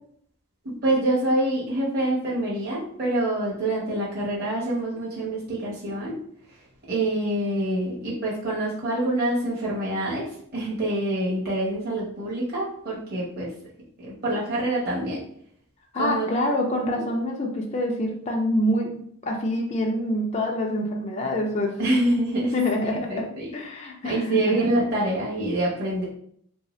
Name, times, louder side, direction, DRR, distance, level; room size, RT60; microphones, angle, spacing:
voice 1, 0.8-6.2 6.5-6.6 6.9-13.5 14.0-15.2 16.0-16.3 21.8-22.5 22.9-23.5 24.0-26.0, right 1 dB, 45° right, -7 dB, 0.9 m, -26 dB
voice 2, 15.9-21.8 22.5-24.7, left 1 dB, 30° left, 0 dB, 0.4 m, -26 dB
3.2 x 2.7 x 3.1 m, 0.66 s
head